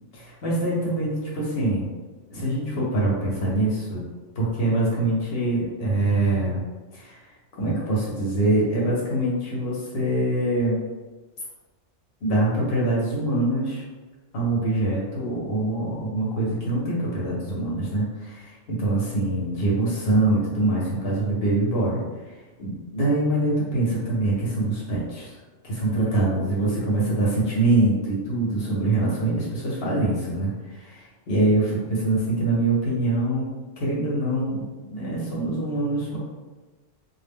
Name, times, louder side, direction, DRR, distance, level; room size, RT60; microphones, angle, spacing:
voice 1, 0.1-1.9 2.3-4.0 4.4-6.6 6.9-7.2 7.5-10.8 12.2-13.8 14.3-22.0 22.6-25.3 25.6-33.5 33.8-36.2, right 2 dB, 60° left, -5 dB, 0.8 m, -24 dB
2.1 x 2.0 x 3.4 m, 1.3 s
omnidirectional pair, 1.2 m